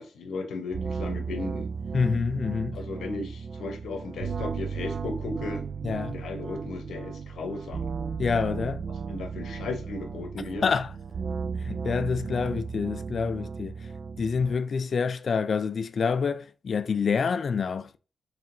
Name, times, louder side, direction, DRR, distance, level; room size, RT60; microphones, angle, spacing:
voice 1, 0.0-1.7 2.7-5.6 6.1-7.9 9.1-10.7, left 3 dB, 85° left, 0.8 m, -35 dB
sound 1, 0.7-14.5, right 5 dB, 50° right, 0.3 m, -35 dB
voice 2, 1.9-2.8 5.8-6.2 8.2-8.8 10.6-10.9 11.6-13.9 14.2-18.0, left 5 dB, 50° left, 0.3 m, -27 dB
4.7 x 3.3 x 2.5 m
wide cardioid pair, 115°, 0 cm